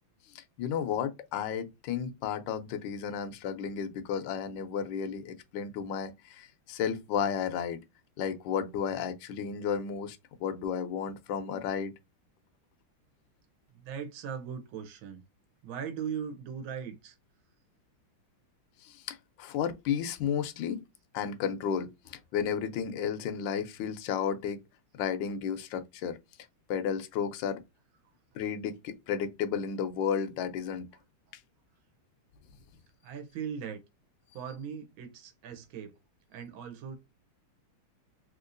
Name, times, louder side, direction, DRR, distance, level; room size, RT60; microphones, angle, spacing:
voice 1, 0.3-7.8 8.2-11.9 18.8-20.8 21.1-24.6 24.9-26.2 26.7-27.6 28.3-30.9, left 7 dB, 70° left, 1.2 m, -33 dB
voice 2, 13.7-15.2 15.6-17.2 30.9-31.0 33.0-33.8 34.3-36.0 36.3-37.0, right 7 dB, 70° right, 1.6 m, -39 dB
3.6 x 2.8 x 2.5 m
omnidirectional pair, 2.3 m